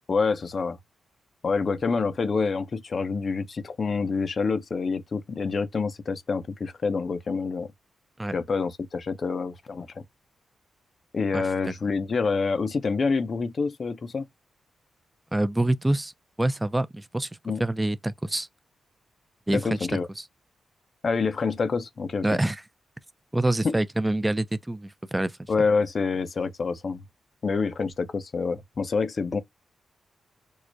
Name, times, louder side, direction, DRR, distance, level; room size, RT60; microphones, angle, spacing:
voice 1, 0.1-0.8 1.4-7.7 8.3-10.0 11.1-14.2 17.4-17.6 19.5-20.1 21.0-22.3 23.6-23.8 25.5-27.0 27.4-29.4, left 4 dB, 55° left, 0.5 m, -27 dB
voice 2, 15.3-16.1 16.4-17.3 17.6-18.5 19.5-19.8 20.2-20.3 22.2-22.6 23.3-25.5, right 1 dB, 15° right, 0.4 m, -26 dB
4.6 x 2.1 x 2.5 m
cardioid pair, 65°, 0 cm